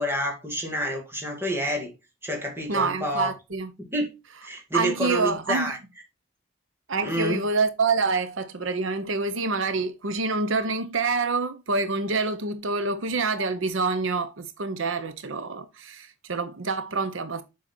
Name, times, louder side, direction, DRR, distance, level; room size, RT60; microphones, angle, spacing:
voice 1, 0.0-1.9 2.2-3.3 3.8-4.1 4.4-5.8 7.0-7.4, equal, 10° right, 2.3 m, -28 dB
voice 2, 2.7-3.7 4.7-5.8 6.9-17.4, right 3 dB, 80° right, 0.9 m, -27 dB
7.4 x 5.6 x 4.4 m
head